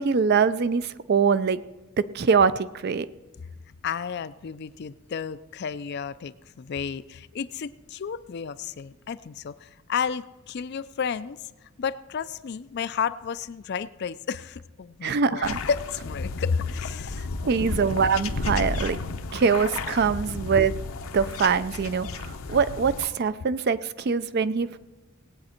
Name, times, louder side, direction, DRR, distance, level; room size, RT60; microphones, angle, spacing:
voice 1, 0.0-1.6 2.0-3.1 15.0-15.6 17.4-19.0 19.3-20.7 21.1-24.8, right 5 dB, 45° right, 15 dB, 0.4 m, -23 dB
voice 2, 3.8-11.4 11.8-17.9, left 6 dB, 50° left, 15 dB, 0.4 m, -32 dB
sound 1, 15.4-23.1, left 3 dB, 70° left, 0.7 m, -33 dB
19.0 x 8.5 x 4.4 m, 1.1 s
head